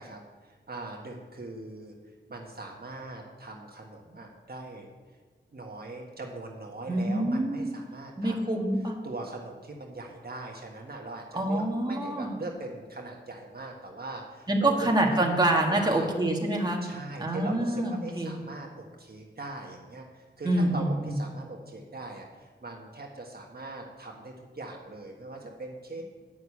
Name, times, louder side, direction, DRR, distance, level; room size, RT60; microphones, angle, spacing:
voice 1, 0.0-1.9 2.3-4.9 5.5-8.6 9.0-14.9 15.2-15.3 15.7-16.1 16.8-18.7 19.0-26.0, right 2 dB, 55° right, 0 dB, 1.5 m, -41 dB
voice 2, 6.9-7.7 8.2-8.9 11.3-12.3 14.5-16.8 17.2-18.3 20.4-21.2, right 1 dB, 20° right, 0 dB, 1.8 m, -26 dB
9.3 x 6.3 x 8.4 m, 1.4 s
wide cardioid pair, 65°, 20 cm